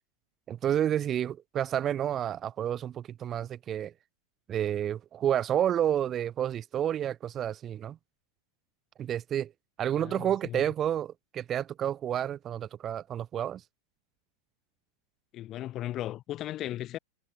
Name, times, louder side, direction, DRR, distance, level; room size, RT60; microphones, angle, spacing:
voice 1, 0.5-3.9 4.5-8.0 9.0-9.5 9.8-13.6, right 10 dB, 25° right, 2.1 m, -30 dB
voice 2, 10.0-10.7 15.3-17.0, left 13 dB, 35° left, 3.2 m, -36 dB
figure-of-eight pair, 90°, 0 cm